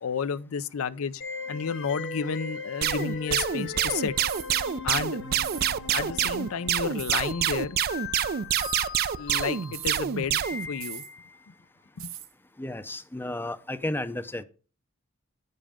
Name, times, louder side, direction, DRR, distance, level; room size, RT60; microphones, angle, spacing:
voice 1, 0.0-1.2 1.5-4.1 4.8-5.2 5.9-7.8 9.2-10.4 10.7-11.0 12.0-12.1, left 6 dB, 80° left, 0.5 m, -31 dB
sound 1, 1.2-11.4, left 4 dB, 60° left, 1.1 m, -39 dB
sound 2, 2.8-10.7, right 9 dB, 50° right, 0.4 m, -27 dB
sound 3, 4.3-4.5 5.4-5.7 7.0-7.2 8.5-8.8 9.7-10.0 10.8-11.1 12.0-12.3, right 12 dB, 75° right, 1.0 m, -40 dB
voice 2, 12.6-14.4, left 1 dB, 10° left, 0.5 m, -33 dB
9.7 x 5.5 x 5.0 m
head